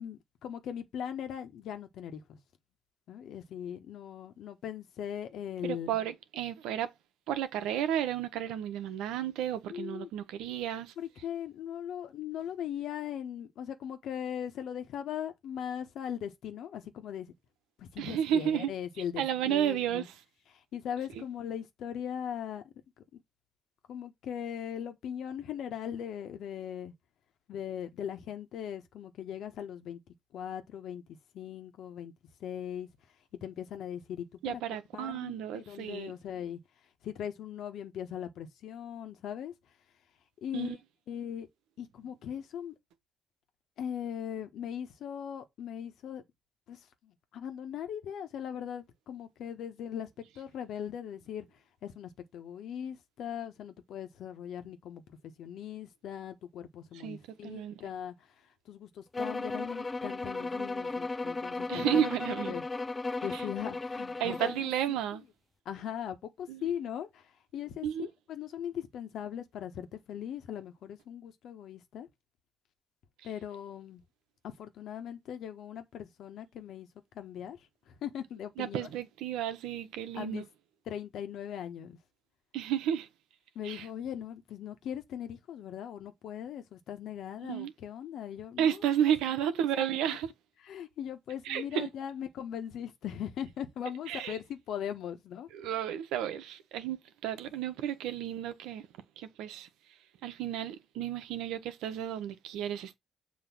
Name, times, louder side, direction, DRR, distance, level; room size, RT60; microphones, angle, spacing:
voice 1, 0.0-2.4 3.1-5.9 9.7-10.1 11.0-17.3 17.8-20.1 20.5-22.7 23.1-23.2 23.9-26.9 27.5-30.0 30.3-32.1 32.4-32.9 33.4-34.6 34.9-36.6 37.0-39.5 40.4-40.8 41.1-41.5 41.8-42.7 43.8-46.2 46.7-51.5 51.8-58.1 58.7-62.0 62.5-62.6 63.2-64.4 65.6-67.2 67.5-67.9 68.3-72.1 73.2-74.0 74.6-76.9 77.1-77.6 77.9-78.9 80.1-80.4 80.9-82.0 83.5-88.9 89.4-89.5 89.8-90.2 90.6-95.5, left 9 dB, 75° left, 1.3 m, -39 dB
voice 2, 5.6-6.9 7.3-10.9 18.0-18.7 19.2-20.1 21.2-21.3 34.4-36.1 40.5-40.7 56.9-57.7 61.7-62.5 63.3-63.4 64.2-65.2 66.5-66.6 67.8-68.1 78.6-80.4 82.5-83.1 83.6-83.8 87.4-87.7 88.6-90.3 91.4-91.9 94.1-94.4 95.5-98.9 99.2-99.7 100.2-103.0, right 10 dB, 85° right, 1.0 m, -32 dB
sound 1, 59.1-64.7, left 3 dB, 30° left, 0.5 m, -35 dB
7.4 x 3.1 x 6.1 m
supercardioid pair, 60°, 0 cm